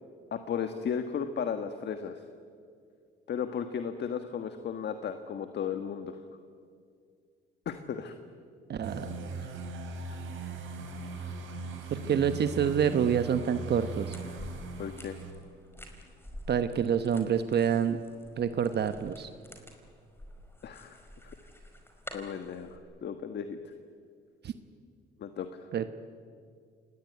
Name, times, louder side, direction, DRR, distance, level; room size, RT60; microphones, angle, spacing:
voice 1, 0.3-2.1 3.3-6.2 7.6-8.1 14.8-15.2 20.6-21.0 21.2-21.4 22.1-23.7 25.2-25.5, left 7 dB, 60° left, 7 dB, 1.6 m, -35 dB
voice 2, 8.7-9.1 11.9-14.2 16.5-18.0 18.4-19.3 24.4-24.5 25.7-25.9, right 8 dB, 55° right, 9 dB, 1.1 m, -27 dB
sound 1, 8.8-15.3, right 3 dB, 80° right, 4.5 m, -39 dB
sound 2, 14.1-22.8, left 1 dB, 10° left, 4.7 m, -49 dB
27.0 x 19.5 x 9.4 m, 2.2 s
cardioid pair, 90°, 20 cm